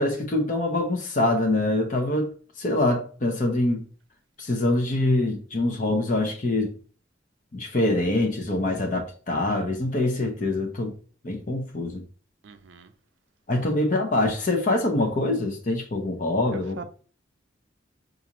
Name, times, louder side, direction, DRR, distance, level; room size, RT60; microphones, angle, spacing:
voice 1, 0.0-2.3 2.6-3.9 4.4-6.7 7.5-10.9 11.2-12.0 13.5-16.8, left 2 dB, 45° left, 0.6 m, -24 dB
voice 2, 12.4-12.9 16.5-16.8, right 5 dB, 75° right, 0.5 m, -42 dB
4.0 x 2.5 x 2.9 m
head